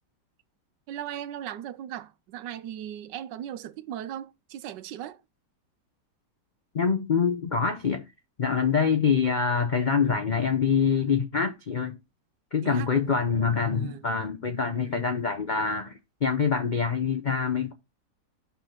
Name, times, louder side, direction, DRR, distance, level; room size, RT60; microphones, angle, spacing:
voice 1, 0.9-5.2 12.6-13.0 13.7-14.1, right 11 dB, 80° right, 1.2 m, -38 dB
voice 2, 6.7-8.0 8.4-12.0 12.5-15.9 16.2-17.7, left 6 dB, 85° left, 0.4 m, -25 dB
5.8 x 5.8 x 4.4 m
omnidirectional pair, 1.9 m